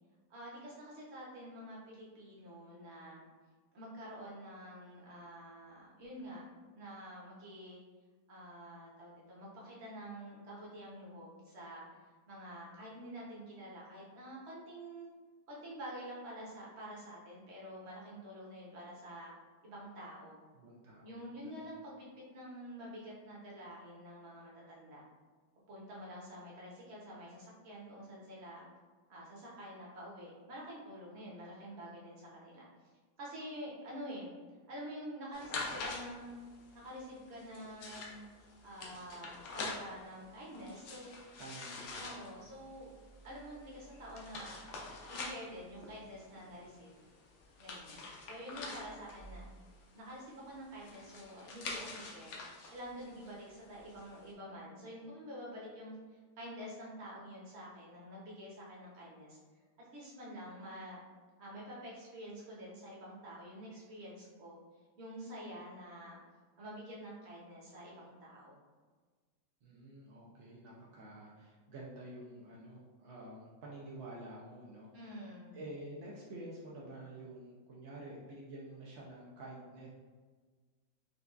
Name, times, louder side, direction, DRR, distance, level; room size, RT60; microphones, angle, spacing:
voice 1, 0.3-3.2 3.7-6.4 6.7-7.8 8.3-11.8 12.3-15.1 15.5-19.3 19.6-20.4 21.0-25.0 25.7-28.6 29.1-32.7 33.2-34.3 34.7-36.4 36.7-38.2 38.6-41.1 42.0-42.9 43.2-44.6 45.1-47.1 47.6-49.4 49.9-52.4 52.7-59.4 59.8-61.0 61.4-64.6 65.0-66.2 66.6-68.6 74.9-75.6, equal, 45° right, -5 dB, 1.0 m, -48 dB
voice 2, 20.5-21.7 41.4-42.4 69.6-75.1 75.5-79.9, right 1 dB, 70° right, -4 dB, 0.6 m, -49 dB
sound 1, 35.3-54.3, left 3 dB, 65° left, 1.0 m, -46 dB
5.2 x 2.2 x 2.4 m, 1.4 s
omnidirectional pair, 1.8 m